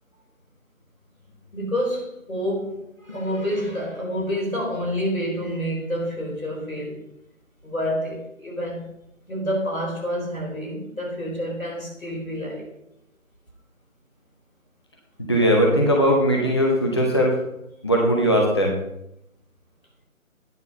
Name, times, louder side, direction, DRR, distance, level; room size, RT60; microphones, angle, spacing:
voice 1, 1.5-7.0 7.6-8.9 9.3-12.7, equal, 85° left, -2 dB, 4.5 m, -28 dB
voice 2, 15.2-17.4 17.8-18.8, equal, 20° left, -1 dB, 0.8 m, -19 dB
9.5 x 6.1 x 5.8 m, 0.81 s
figure-of-eight pair, 155°, 41 cm